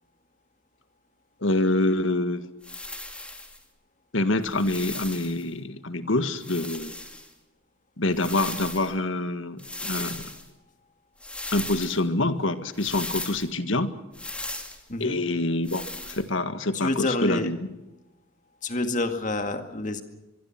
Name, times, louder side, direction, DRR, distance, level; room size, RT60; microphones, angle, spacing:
voice 1, 1.4-2.5 4.1-6.9 8.0-10.3 11.5-13.9 15.0-17.6, left 2 dB, 70° left, 10 dB, 1.8 m, -26 dB
sound 1, 2.6-3.6 4.4-5.4 6.4-7.3 8.1-8.9 9.6-10.5 11.2-12.0 12.7-13.5 14.1-14.8 15.6-16.2, left 2 dB, 5° left, 2.4 m, -37 dB
voice 2, 16.7-17.5 18.6-20.0, left 2 dB, 40° left, 7 dB, 2.1 m, -28 dB
24.5 x 23.0 x 6.0 m, 1.0 s
head